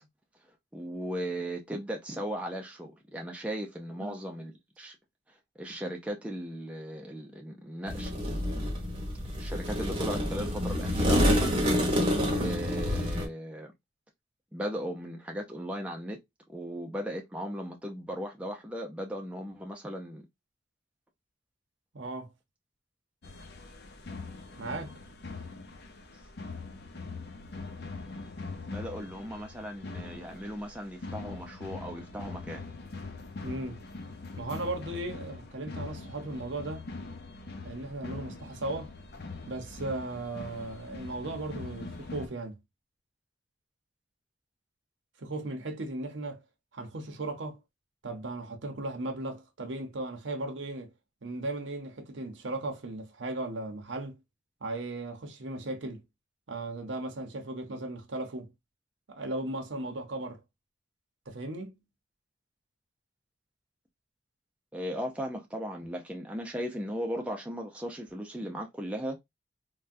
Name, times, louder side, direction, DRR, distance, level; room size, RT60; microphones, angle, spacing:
voice 1, 0.7-5.0 5.6-8.7 9.4-11.6 12.3-13.7 14.5-16.2 16.5-20.3 28.7-32.6 64.7-69.2, equal, 5° right, 0.4 m, -37 dB
sound 1, 7.9-13.2, left 1 dB, 25° right, 0.8 m, -28 dB
voice 2, 21.9-22.3 24.6-25.0 33.4-33.8 34.4-36.9 37.6-38.9 39.5-42.5 45.2-46.4 46.7-47.6 48.0-50.9 51.2-54.2 54.6-56.0 56.5-58.5 59.1-60.4 61.3-61.8, right 2 dB, 75° right, 0.8 m, -36 dB
sound 2, 23.2-42.3, left 3 dB, 55° left, 0.6 m, -42 dB
3.4 x 2.2 x 2.5 m
head